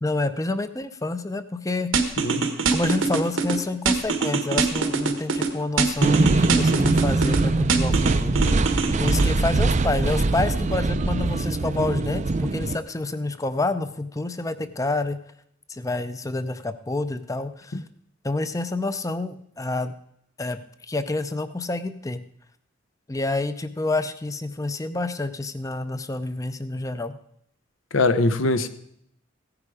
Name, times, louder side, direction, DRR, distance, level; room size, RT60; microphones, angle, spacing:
voice 1, 0.0-1.9 2.7-8.6 9.0-15.2 15.7-17.8 18.2-19.9 20.4-22.2 23.1-27.1, left 2 dB, 15° left, 0.6 m, -28 dB
sound 1, 1.9-3.6 3.9-5.5 5.8-7.4 7.7-9.3, right 4 dB, 90° right, 1.5 m, -23 dB
voice 2, 2.2-2.5 17.7-17.8 27.9-28.7, left 2 dB, 85° left, 0.9 m, -22 dB
sound 2, 6.0-12.8, right 3 dB, 35° right, 0.5 m, -22 dB
16.0 x 9.8 x 4.9 m
head